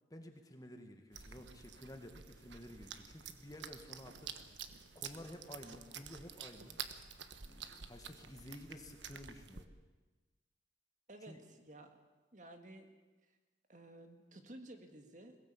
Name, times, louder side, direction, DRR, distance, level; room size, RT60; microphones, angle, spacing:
voice 1, 0.1-4.6 4.9-6.8 7.4-9.7 11.3-11.4, left 1 dB, 20° left, 5 dB, 1.8 m, -52 dB
sound 1, 1.1-9.6, right 7 dB, 80° right, 1.3 m, -50 dB
voice 2, 11.1-12.0 12.3-13.0 13.2-13.4 13.7-15.4, right 1 dB, 45° right, 6 dB, 1.9 m, -54 dB
21.5 x 17.0 x 8.5 m, 1.2 s
head